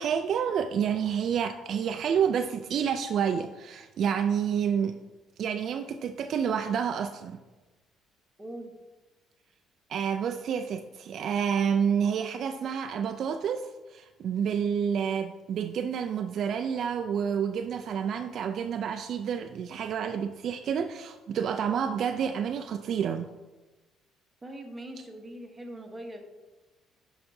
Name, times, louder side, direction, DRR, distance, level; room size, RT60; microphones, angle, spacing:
voice 1, 0.0-5.0 5.4-7.4 9.9-23.3, right 7 dB, 50° right, 7 dB, 0.3 m, -29 dB
voice 2, 8.4-8.7 24.4-26.2, right 1 dB, 15° right, 3 dB, 0.9 m, -41 dB
9.4 x 5.6 x 2.6 m, 1.2 s
cardioid pair, 145°, 0 cm